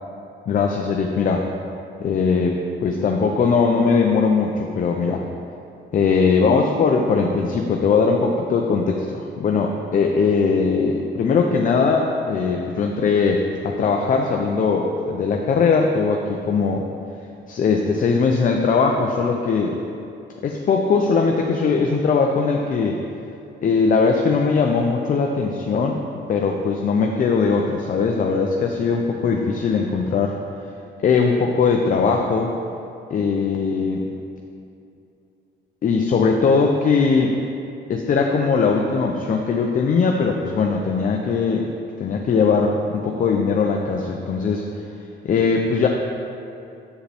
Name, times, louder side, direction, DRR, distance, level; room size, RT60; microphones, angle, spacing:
voice 1, 0.5-1.5 2.0-5.2 5.9-16.9 17.5-19.8 20.4-23.0 23.6-26.0 26.3-30.4 31.0-32.5 33.1-34.1 35.8-37.4 37.9-41.7 42.0-44.7 45.2-45.9, left 5 dB, 45° left, 2 dB, 0.5 m, -20 dB
7.6 x 4.8 x 3.4 m, 2.7 s
cardioid pair, 90°, 20 cm